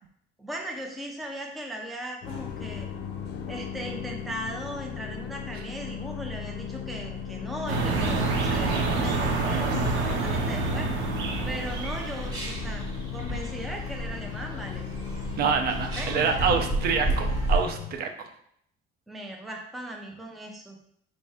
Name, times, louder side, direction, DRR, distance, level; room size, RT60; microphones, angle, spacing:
voice 1, 0.4-2.9 3.5-10.9 11.5-14.9 15.9-16.5 19.1-20.8, right 1 dB, ahead, 0 dB, 0.4 m, -38 dB
sound 1, 2.2-18.0, left 6 dB, 60° left, 0.6 m, -37 dB
sound 2, 7.7-12.6, right 3 dB, 80° right, 0.8 m, -27 dB
sound 3, 11.1-17.6, right 1 dB, 20° right, 0.9 m, -32 dB
voice 2, 15.4-18.3, right 6 dB, 55° right, 5 dB, 0.5 m, -26 dB
4.3 x 2.7 x 3.3 m, 0.70 s
cardioid pair, 165°, 20 cm